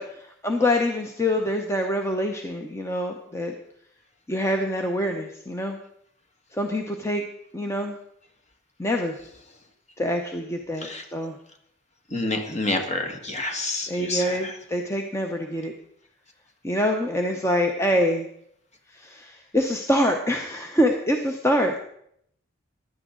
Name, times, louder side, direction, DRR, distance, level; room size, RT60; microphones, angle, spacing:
voice 1, 0.0-3.5 4.3-5.8 6.5-7.2 7.5-7.9 8.8-9.2 10.0-11.4 13.9-15.7 16.6-18.3 18.9-21.8, equal, 15° left, 3 dB, 0.8 m, -25 dB
voice 2, 10.8-11.3 12.1-14.5, left 2 dB, 35° left, 4 dB, 1.7 m, -29 dB
15.5 x 11.0 x 3.8 m, 0.71 s
head